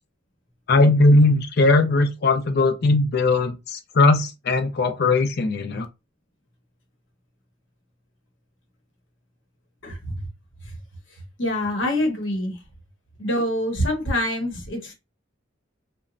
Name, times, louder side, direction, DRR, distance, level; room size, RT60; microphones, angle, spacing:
voice 1, 0.7-5.9, left 2 dB, 55° left, 0.5 m, -19 dB
voice 2, 11.4-12.6 13.2-14.9, left 1 dB, 80° left, 1.0 m, -25 dB
2.9 x 2.2 x 2.4 m
head